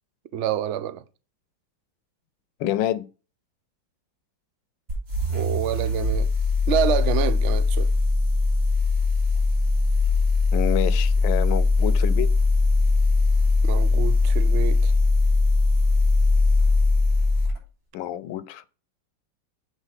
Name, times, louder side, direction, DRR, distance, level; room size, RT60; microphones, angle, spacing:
voice 1, 0.3-1.0 5.3-6.3 6.7-7.9 13.6-14.9, right 9 dB, 85° right, 0.6 m, -27 dB
voice 2, 2.6-3.0 10.5-12.3 17.9-18.7, left 13 dB, 80° left, 1.3 m, -27 dB
sound 1, 4.9-17.6, left 3 dB, 50° right, 3.6 m, -20 dB
8.1 x 3.9 x 5.7 m
omnidirectional pair, 2.1 m